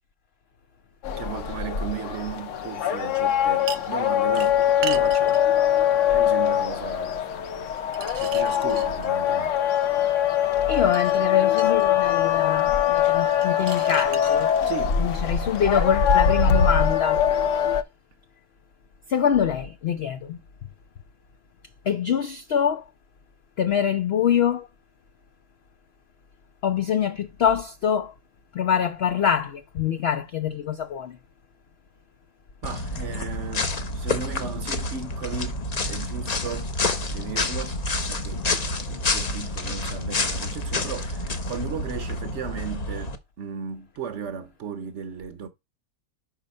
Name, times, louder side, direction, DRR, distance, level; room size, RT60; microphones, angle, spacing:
sound 1, 1.0-17.8, left 9 dB, 60° left, 0.9 m, -22 dB
voice 1, 1.2-5.4 6.1-7.3 8.2-9.6 14.6-15.0 32.6-36.7 37.1-37.8 38.1-45.5, right 7 dB, 55° right, 0.9 m, -35 dB
sound 2, 3.7-4.0 4.3-5.5 7.8-9.3 10.7-11.9 13.4-14.4 16.0-16.1, right 9 dB, 80° right, 1.1 m, -37 dB
voice 2, 10.7-14.5 15.0-17.2 19.1-20.4 21.9-22.8 23.6-24.7 26.6-28.1 28.5-31.2, left 8 dB, 85° left, 0.5 m, -24 dB
sound 3, 32.6-43.2, left 2 dB, 40° left, 0.6 m, -28 dB
5.3 x 4.8 x 5.2 m
omnidirectional pair, 1.7 m